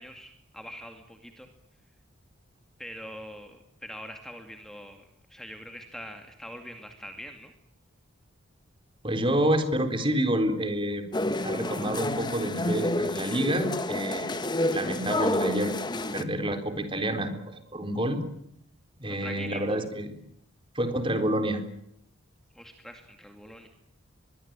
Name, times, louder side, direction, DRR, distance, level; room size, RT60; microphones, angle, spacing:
voice 1, 0.0-1.5 2.8-7.5 19.1-19.8 22.5-23.7, equal, ahead, 5 dB, 2.3 m, -43 dB
voice 2, 9.0-11.1 11.4-14.3 14.7-15.8 16.1-18.2 19.0-20.2 20.8-21.6, right 1 dB, 25° right, 8 dB, 3.9 m, -28 dB
sound 1, 11.1-16.2, left 1 dB, 20° left, 1.4 m, -29 dB
24.0 x 22.5 x 8.9 m, 0.72 s
head